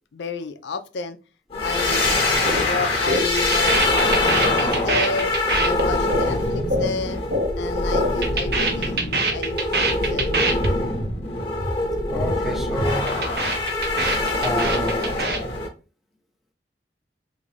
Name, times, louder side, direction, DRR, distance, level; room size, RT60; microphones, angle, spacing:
voice 1, 0.1-1.2 1.6-2.2 2.5-5.3 5.6-7.2 7.6-10.3, left 4 dB, 90° left, 0.5 m, -30 dB
sound 1, 1.5-15.7, left 2 dB, 35° left, 0.9 m, -24 dB
sound 2, 2.5-2.7 2.9-7.5 7.8-10.7 11.0-11.2 11.4-11.8 12.0-12.4 12.6-15.4, right 2 dB, 60° right, 0.8 m, -24 dB
voice 2, 12.1-13.2 14.4-15.0, equal, ahead, 0.5 m, -28 dB
3.7 x 2.7 x 3.2 m
head